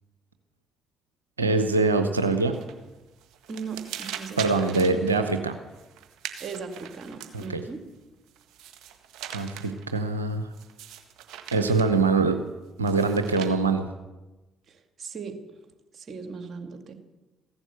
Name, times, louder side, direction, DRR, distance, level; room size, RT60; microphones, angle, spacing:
voice 1, 1.4-2.6 4.4-5.5 7.3-7.6 9.3-10.5 11.5-12.4 12.8-13.9, right 3 dB, 85° right, 8 dB, 0.7 m, -23 dB
sound 1, 2.5-2.9 3.2-7.7 8.3-9.8 10.5-12.0 12.9-13.5, right 10 dB, 65° right, 1.7 m, -41 dB
voice 2, 3.5-5.0 6.4-7.8 14.7-15.4 15.9-16.9, right 5 dB, 45° right, 6 dB, 2.3 m, -38 dB
15.0 x 11.5 x 8.1 m, 1.1 s
figure-of-eight pair, 45°, 0 cm